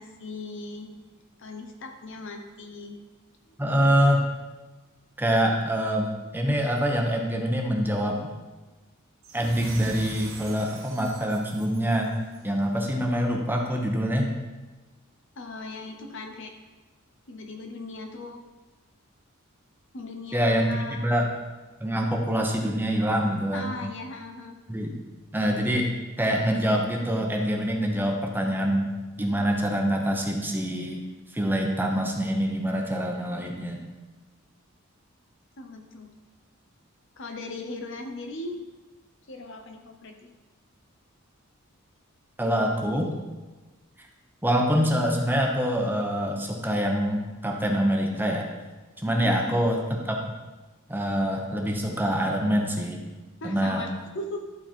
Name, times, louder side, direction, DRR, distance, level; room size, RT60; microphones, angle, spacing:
voice 1, 0.0-3.0 3.4-3.5 15.4-16.5 17.3-18.4 19.9-21.1 23.5-24.6 35.6-36.1 37.2-38.6 39.3-40.3 49.2-49.3 53.4-54.4, left 2 dB, 60° left, 4 dB, 1.0 m, -38 dB
voice 2, 3.6-4.3 5.2-6.1 6.3-8.2 9.3-12.1 12.4-14.3 20.3-21.3 21.8-23.8 24.7-24.9 25.3-25.9 26.2-28.9 29.2-31.0 31.3-33.8 42.4-43.1 44.4-48.5 49.0-50.2 50.9-53.0 53.4-53.8, equal, 10° right, 1 dB, 0.9 m, -25 dB
sound 1, 9.2-12.5, right 3 dB, 70° right, 1.1 m, -42 dB
12.0 x 4.3 x 4.4 m, 1.2 s
head